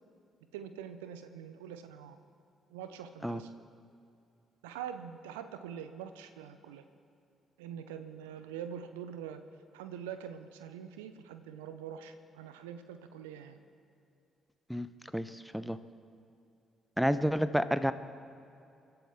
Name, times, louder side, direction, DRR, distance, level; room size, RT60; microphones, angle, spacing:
voice 1, 0.5-2.2 2.7-3.5 4.6-6.8 7.6-9.4 9.7-13.6, right 8 dB, 80° right, 10 dB, 0.7 m, -44 dB
voice 2, 15.1-15.8 17.0-17.9, equal, ahead, 13 dB, 0.8 m, -30 dB
28.5 x 11.5 x 3.6 m, 2.6 s
figure-of-eight pair, 45°, 0 cm